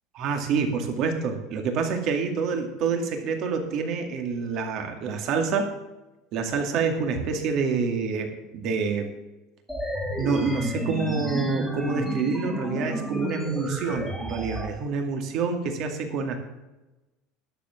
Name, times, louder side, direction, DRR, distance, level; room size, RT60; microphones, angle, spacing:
voice 1, 0.2-5.7 6.3-9.1 10.2-16.4, right 5 dB, 45° right, 4 dB, 2.2 m, -27 dB
sound 1, 9.7-14.7, equal, ahead, 1.7 m, -31 dB
11.5 x 7.3 x 7.0 m, 1.0 s
cardioid pair, 155°, 0 cm